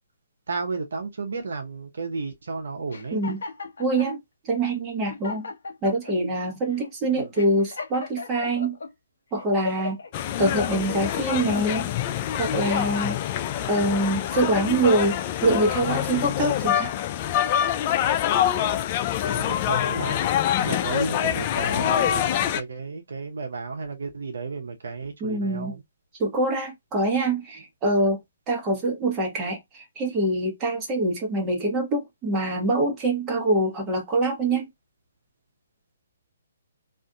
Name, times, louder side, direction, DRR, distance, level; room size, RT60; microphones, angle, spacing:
voice 1, 0.5-3.2 7.1-7.3 19.2-20.3 20.6-25.8, right 4 dB, 70° right, 0.8 m, -33 dB
sound 1, 2.9-4.1 4.7-4.8 5.1-6.2 6.7-6.9 7.4-8.9 9.4-10.1 10.6-11.9 12.4-13.4, left 4 dB, 65° left, 1.0 m, -37 dB
voice 2, 3.1-3.4 3.8-4.2 4.5-5.5 5.8-8.8 9.3-10.0 10.4-11.9 12.4-13.2 13.7-16.9 25.2-25.8 26.2-28.2 28.5-34.7, right 2 dB, 20° right, 1.1 m, -24 dB
sound 2, 10.1-22.6, left 10 dB, 35° left, 0.3 m, -25 dB
2.5 x 2.5 x 2.3 m
figure-of-eight pair, 135°, 0 cm